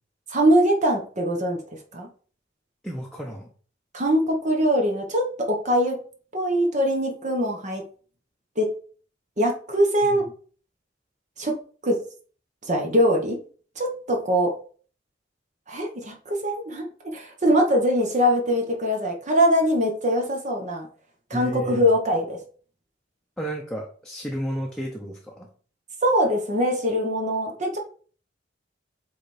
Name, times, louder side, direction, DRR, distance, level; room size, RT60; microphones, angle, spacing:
voice 1, 0.3-1.6 1.9-2.1 3.9-6.0 6.3-7.8 8.6-8.7 9.4-10.2 11.4-11.6 11.8-12.0 12.7-13.4 13.8-14.5 15.7-16.8 17.1-20.9 21.3-22.4 26.0-27.8, equal, 40° right, 1 dB, 1.2 m, -22 dB
voice 2, 2.8-3.5 10.0-10.2 21.3-21.9 23.4-25.5, equal, 5° left, -1 dB, 0.9 m, -32 dB
8.2 x 3.5 x 4.3 m, 0.43 s
head